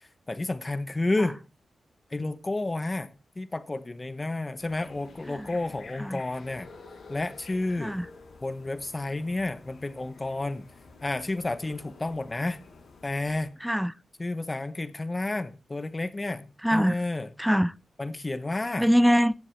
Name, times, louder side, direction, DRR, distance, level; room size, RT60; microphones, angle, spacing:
voice 1, 0.3-1.4 2.1-3.1 3.4-6.7 7.1-8.0 8.4-10.7 11.0-12.6 13.0-13.6 14.2-17.3 18.0-18.9, left 2 dB, 25° left, 1.0 m, -31 dB
sound 1, 4.6-13.5, left 4 dB, 75° left, 7.6 m, -50 dB
voice 2, 13.6-13.9 16.6-17.0 17.4-17.7 18.8-19.3, equal, ahead, 0.5 m, -23 dB
15.0 x 11.0 x 3.4 m
cardioid pair, 80°, 0 cm